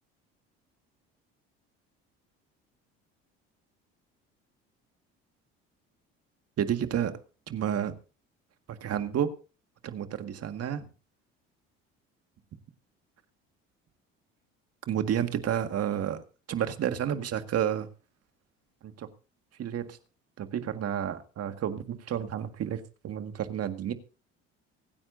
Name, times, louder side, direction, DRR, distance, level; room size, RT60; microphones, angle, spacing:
voice 1, 6.6-7.1 7.5-8.0 8.8-9.4 9.8-10.8 14.9-16.2 16.5-17.9 18.8-19.1 19.6-20.0 20.4-23.9, right 9 dB, 50° right, 1.9 m, -30 dB
24.5 x 9.7 x 2.7 m
supercardioid pair, 75°, 31 cm